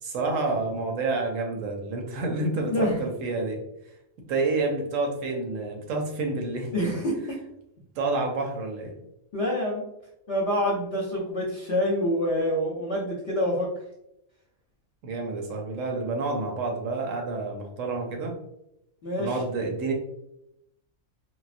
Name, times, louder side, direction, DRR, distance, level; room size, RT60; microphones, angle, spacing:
voice 1, 0.0-3.6 4.3-6.7 8.0-8.9 15.0-18.3 19.2-19.9, right 3 dB, 70° right, 2 dB, 1.0 m, -29 dB
voice 2, 2.7-3.0 6.7-7.4 9.3-9.8 10.3-13.7 19.0-19.4, equal, 50° left, -6 dB, 0.9 m, -26 dB
4.1 x 2.0 x 2.4 m, 0.82 s
omnidirectional pair, 1.5 m